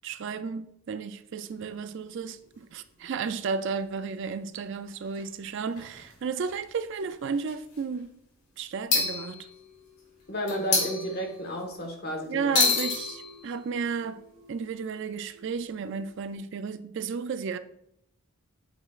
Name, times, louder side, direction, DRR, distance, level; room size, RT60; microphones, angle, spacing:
voice 1, 0.0-8.2 8.6-9.5 12.3-14.2 14.5-17.6, right 5 dB, 55° right, 0.3 m, -33 dB
sound 1, 1.4-2.5 3.3-3.4 3.6-3.7 5.2-5.3 5.8-6.1 6.5-6.6 7.3-7.8 8.9-10.0 10.5-11.8 12.6-16.3, left 4 dB, 85° left, 2.2 m, -31 dB
voice 2, 10.3-12.6, equal, 45° left, 1.4 m, -32 dB
8.2 x 5.0 x 2.4 m
head